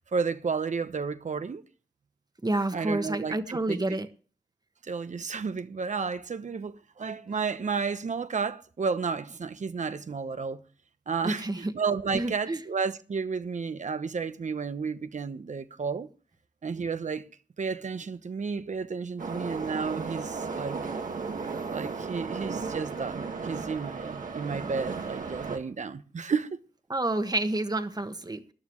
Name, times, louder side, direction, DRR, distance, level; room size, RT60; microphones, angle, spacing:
voice 1, 0.1-1.6 2.7-3.8 4.8-10.6 11.1-16.1 16.6-17.2 17.6-20.8 21.7-26.6, right 5 dB, 65° right, 0.9 m, -32 dB
voice 2, 2.4-4.1 11.2-11.7 12.1-12.6 26.9-28.5, right 2 dB, 30° right, 1.3 m, -29 dB
Subway metro underground, 19.2-25.6, right 4 dB, 90° right, 1.7 m, -35 dB
19.0 x 11.5 x 3.1 m
cardioid pair, 50°, 13 cm